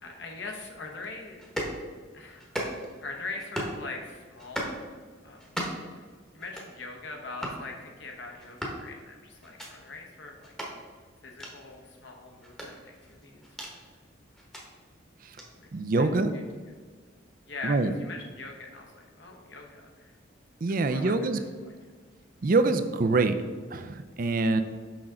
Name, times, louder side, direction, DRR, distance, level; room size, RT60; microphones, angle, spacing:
voice 1, 0.0-1.5 2.1-2.5 3.0-4.9 5.2-5.7 6.3-10.5 11.2-13.4 15.5-15.7 16.0-16.1 16.7-16.9 17.5-20.1 20.7-21.1 22.1-22.2, left 3 dB, 60° left, 1 dB, 1.0 m, -42 dB
sound 1, 1.4-1.8 2.4-3.0 3.4-3.8 4.4-4.8 5.4-5.9 6.4-6.7 7.4-7.6 8.4-8.8 9.4-9.7 10.4-10.7 11.4-11.5 12.4-13.7 14.4-14.6 15.4-15.5, equal, 5° left, 1.0 m, -36 dB
voice 2, 15.7-16.3 17.6-17.9 20.6-21.4 22.4-23.4 23.7-24.6, right 3 dB, 45° right, 9 dB, 0.4 m, -25 dB
6.0 x 5.8 x 3.7 m, 1.5 s
head